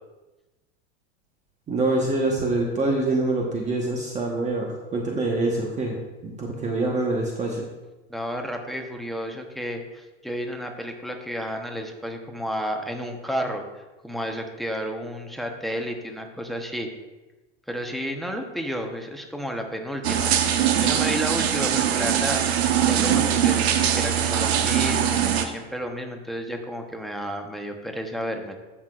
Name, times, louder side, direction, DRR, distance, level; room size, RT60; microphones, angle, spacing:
voice 1, 1.7-6.0 6.2-7.7, right 2 dB, 25° right, -1 dB, 1.2 m, -25 dB
voice 2, 8.1-16.9 17.7-28.5, equal, ahead, 3 dB, 0.9 m, -32 dB
sound 1, 20.0-25.5, right 9 dB, 85° right, 0.9 m, -22 dB
14.5 x 5.9 x 2.4 m, 1.1 s
supercardioid pair, 115°, 31 cm